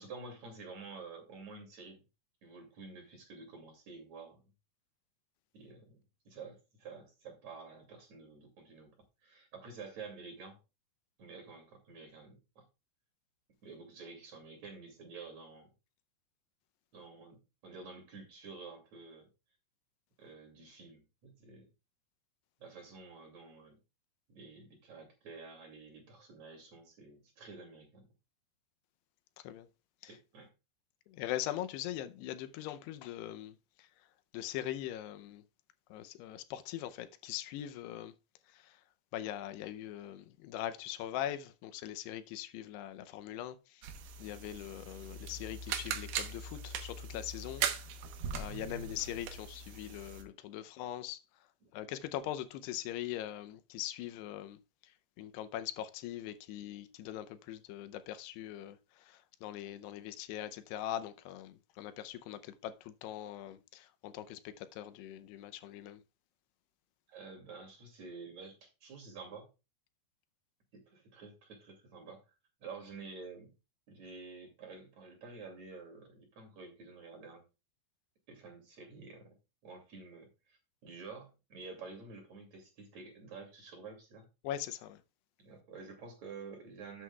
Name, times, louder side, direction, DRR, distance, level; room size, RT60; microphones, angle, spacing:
voice 1, 0.0-2.0 2.4-4.4 5.5-6.0 6.3-9.0 9.2-10.6 11.2-12.7 13.6-15.7 16.9-19.3 20.2-21.7 22.6-23.8 24.3-28.1 30.1-30.5 48.3-49.0 51.6-51.7 67.1-69.5 70.7-72.2 72.6-73.5 73.9-77.4 78.3-79.4 79.6-84.3 85.4-87.0, right 4 dB, 45° right, 3.4 m, -50 dB
voice 2, 31.1-33.9 34.3-35.4 35.9-38.1 38.5-38.8 39.1-43.9 44.2-47.7 48.3-51.2 51.7-54.6 55.2-66.0 84.4-85.0, left 12 dB, 85° left, 2.8 m, -41 dB
sound 1, 43.8-50.2, right 7 dB, 70° right, 2.7 m, -40 dB
12.5 x 7.6 x 2.3 m
omnidirectional pair, 4.7 m